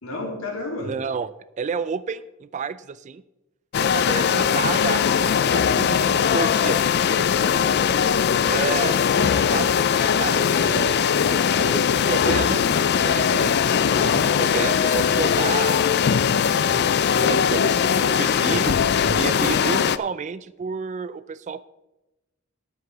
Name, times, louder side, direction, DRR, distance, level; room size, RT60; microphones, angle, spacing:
voice 1, 0.0-0.9 7.3-7.9 18.5-19.2, left 1 dB, 80° left, 0 dB, 3.0 m, -32 dB
voice 2, 0.8-3.2 3.8-6.8 8.5-11.0 11.3-12.7 13.0-16.0 16.3-21.6, right 5 dB, 35° right, 16 dB, 0.3 m, -31 dB
sound 1, 3.7-20.0, left 7 dB, 50° left, 0.4 m, -20 dB
sound 2, 11.0-11.1 11.3-11.4 12.5-16.2 18.7-18.8, left 2 dB, 25° left, 1.0 m, -42 dB
10.5 x 8.0 x 5.6 m, 0.97 s
head